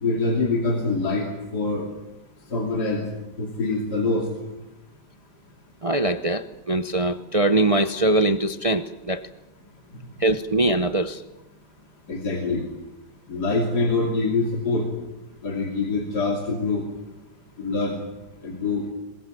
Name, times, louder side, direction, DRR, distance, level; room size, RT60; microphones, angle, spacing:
voice 1, 0.0-1.9 2.5-3.0 3.4-4.2 12.1-12.6 13.3-14.8 15.4-16.8 17.6-18.0 18.4-18.8, left 3 dB, 65° left, 1 dB, 3.4 m, -24 dB
voice 2, 5.8-9.3 10.2-11.2, right 1 dB, 35° right, 10 dB, 0.5 m, -22 dB
22.0 x 21.5 x 9.2 m, 0.98 s
omnidirectional pair, 1.9 m